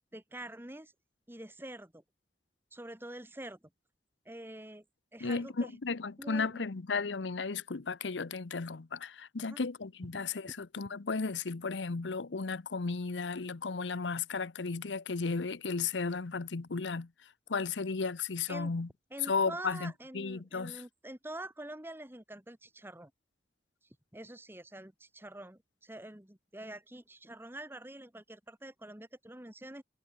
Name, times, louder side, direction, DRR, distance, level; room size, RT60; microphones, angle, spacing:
voice 1, 0.1-0.9 1.3-2.0 2.7-3.6 4.2-4.8 5.1-5.8 6.2-6.6 9.4-9.6 18.5-18.7 19.1-23.1 24.1-29.8, right 1 dB, 10° right, 1.5 m, -46 dB
voice 2, 5.2-17.1 17.5-18.9 19.3-20.8, left 4 dB, 85° left, 0.8 m, -34 dB
head